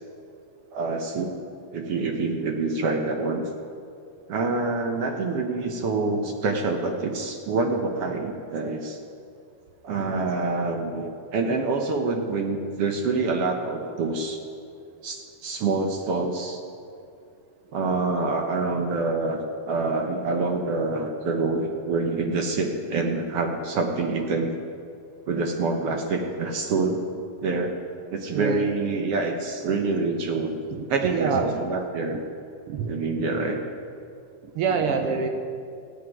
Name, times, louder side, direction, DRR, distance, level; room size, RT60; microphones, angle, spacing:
voice 1, 0.7-1.3 1.7-3.4 4.3-9.0 9.8-14.4 15.0-16.6 17.7-19.4 19.7-24.5 25.3-27.0 27.4-27.7 28.1-30.6 30.9-32.2 32.9-33.6, right 3 dB, 65° right, 3 dB, 1.6 m, -26 dB
voice 2, 28.3-28.7 30.7-31.6 32.7-32.9 34.4-35.3, right 5 dB, 85° right, 5 dB, 1.2 m, -26 dB
15.0 x 8.4 x 9.7 m, 2.5 s
omnidirectional pair, 3.8 m